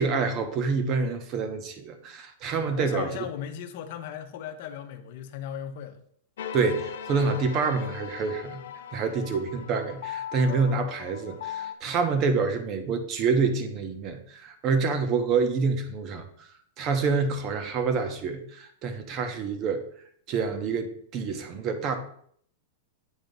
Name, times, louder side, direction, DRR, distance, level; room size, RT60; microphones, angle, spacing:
voice 1, 0.0-3.1 6.5-8.6 8.9-16.5 16.8-19.8 20.3-21.9, right 4 dB, 35° right, 8 dB, 0.9 m, -27 dB
voice 2, 2.6-6.0, left 9 dB, 55° left, 8 dB, 0.8 m, -37 dB
sound 1, 6.4-11.7, left 9 dB, 75° left, 0.5 m, -38 dB
8.1 x 2.9 x 5.2 m, 0.63 s
supercardioid pair, 150°, 0 cm